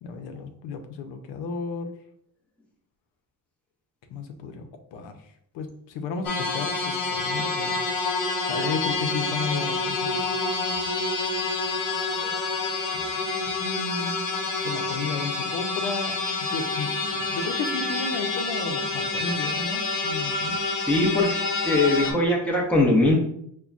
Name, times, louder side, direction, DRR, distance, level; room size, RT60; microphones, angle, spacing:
voice 1, 0.0-1.9 4.1-5.2 5.5-7.8 8.5-10.2 12.9-13.0 13.6-14.3 14.6-16.2 16.5-20.6, left 4 dB, 80° left, 6 dB, 0.6 m, -33 dB
sound 1, 6.2-22.1, left 3 dB, 45° left, 0.9 m, -28 dB
voice 2, 20.8-21.3 21.6-23.1, left 2 dB, 5° left, -3 dB, 0.7 m, -21 dB
5.5 x 2.2 x 2.4 m, 0.70 s
cardioid pair, 140°, 43 cm